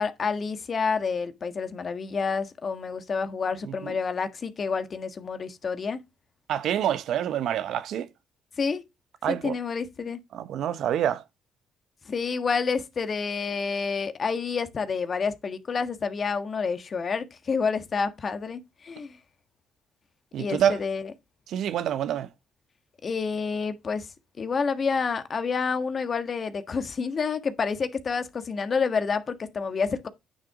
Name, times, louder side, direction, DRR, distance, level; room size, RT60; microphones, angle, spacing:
voice 1, 0.0-6.0 8.6-8.8 9.3-10.2 12.1-19.2 20.4-21.1 23.0-24.1 24.4-30.1, left 5 dB, 45° left, 1.5 m, -29 dB
voice 2, 6.5-8.1 9.2-9.6 10.3-11.2 20.3-20.8 21.5-22.3, right 10 dB, 70° right, 0.8 m, -27 dB
9.6 x 6.4 x 3.6 m
supercardioid pair, 65°, 0 cm